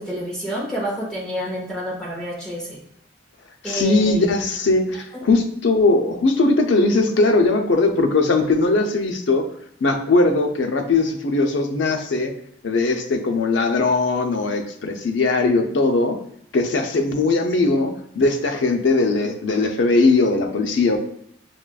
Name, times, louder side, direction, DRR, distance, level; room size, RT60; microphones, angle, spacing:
voice 1, 0.0-2.8 3.6-4.2 5.1-5.3, equal, 5° left, -6 dB, 0.9 m, -28 dB
voice 2, 3.6-9.4 9.8-12.3 12.6-16.2 16.5-21.0, left 3 dB, 85° left, 4 dB, 0.5 m, -19 dB
6.0 x 2.4 x 2.2 m, 0.69 s
head